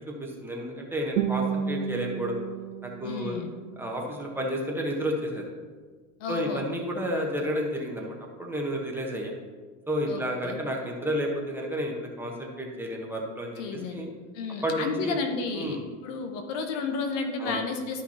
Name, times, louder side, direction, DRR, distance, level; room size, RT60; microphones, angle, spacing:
voice 1, 0.1-2.4 2.8-3.4 3.8-5.5 6.3-9.3 9.9-14.1 14.6-15.2 15.5-15.8 17.4-17.6, equal, 5° right, -1 dB, 1.2 m, -31 dB
Guitar, 1.2-4.2, right 8 dB, 85° right, 0.7 m, -32 dB
voice 2, 3.0-3.5 6.2-6.6 10.1-10.6 13.6-14.0 14.3-15.8 16.0-18.0, left 4 dB, 75° left, 5 dB, 1.3 m, -32 dB
12.5 x 5.7 x 2.9 m, 1.4 s
supercardioid pair, 135°, 39 cm